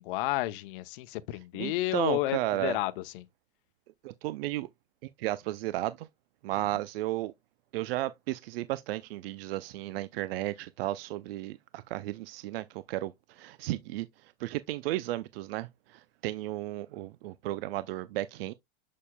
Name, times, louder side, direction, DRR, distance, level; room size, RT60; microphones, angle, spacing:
voice 1, 0.0-3.3, left 17 dB, 55° left, 0.7 m, -31 dB
voice 2, 1.5-2.8 4.0-4.7 5.0-6.1 6.4-7.3 7.7-18.5, right 16 dB, 65° right, 0.5 m, -34 dB
7.3 x 6.5 x 2.2 m
supercardioid pair, 140°, 32 cm